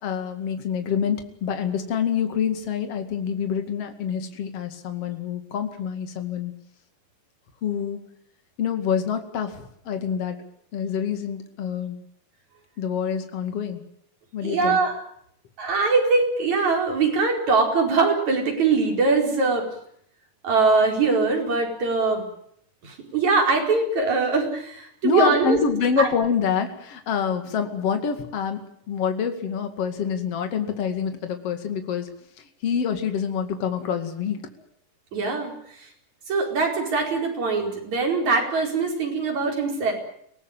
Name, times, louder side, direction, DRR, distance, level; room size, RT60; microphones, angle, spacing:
voice 1, 0.0-6.5 7.6-8.0 8.6-10.4 10.7-12.0 12.8-13.8 14.3-14.8 25.0-28.6 28.9-32.1 32.6-34.4, left 7 dB, 50° left, 7 dB, 3.1 m, -26 dB
voice 2, 14.4-15.0 15.6-19.6 20.4-22.2 22.8-25.6 26.0-26.1 35.1-35.5 36.3-39.9, right 4 dB, 60° right, 2 dB, 6.1 m, -22 dB
25.0 x 18.5 x 9.0 m, 0.69 s
omnidirectional pair, 3.6 m